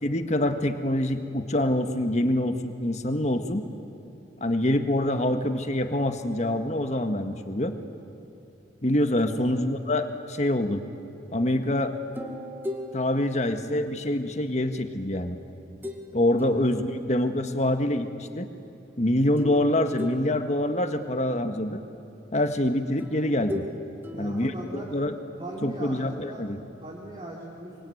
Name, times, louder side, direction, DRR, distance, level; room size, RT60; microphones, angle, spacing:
voice 1, 0.0-3.7 4.4-7.8 8.8-10.9 11.3-12.0 12.9-15.4 16.1-18.5 19.0-21.8 22.3-23.6 24.2-25.1 25.6-26.6, left 1 dB, 40° left, 6 dB, 1.7 m, -25 dB
sound 1, 12.1-14.5 15.8-16.1 16.4-17.7 19.4-21.1 23.0-25.3, left 1 dB, 10° right, 2.0 m, -39 dB
voice 2, 24.1-24.9 25.4-26.4 26.8-27.9, right 1 dB, 30° right, -3 dB, 3.3 m, -39 dB
25.0 x 24.5 x 9.4 m, 2.9 s
head